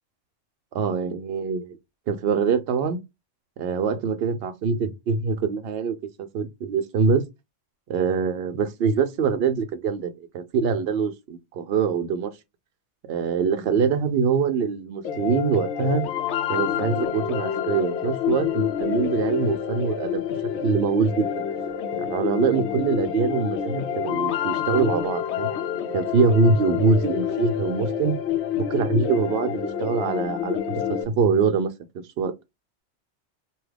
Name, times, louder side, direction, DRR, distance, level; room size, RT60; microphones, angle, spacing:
voice 1, 0.7-1.8 2.1-3.0 3.6-7.2 7.9-12.4 13.1-16.0 16.5-20.2 20.6-21.3 22.0-25.5 25.9-28.1 28.7-31.7 32.2-32.3, right 5 dB, 60° right, 0.7 m, -24 dB
sound 1, 15.0-31.0, left 9 dB, 65° left, 0.8 m, -28 dB
2.8 x 2.3 x 3.2 m
omnidirectional pair, 1.3 m